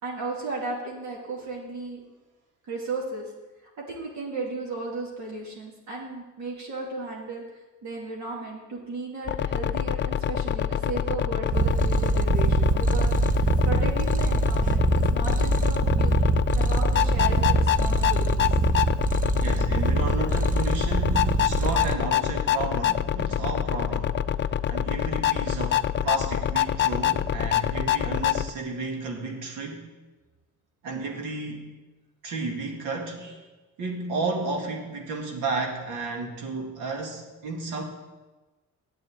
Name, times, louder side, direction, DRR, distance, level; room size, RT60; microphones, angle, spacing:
voice 1, 0.0-2.0 2.7-3.3 3.8-7.4 7.8-18.6, right 3 dB, 70° right, -3 dB, 2.7 m, -35 dB
sound 1, 9.3-28.5, left 10 dB, 40° left, 0.5 m, -26 dB
Purr, 11.5-21.9, right 3 dB, 25° right, 0.8 m, -24 dB
voice 2, 19.3-24.3 24.7-29.9 30.8-31.7 32.2-33.5 33.8-37.8, right 3 dB, 85° right, 1 dB, 2.0 m, -32 dB
8.3 x 7.3 x 8.7 m, 1.2 s
cardioid pair, 90°, 30 cm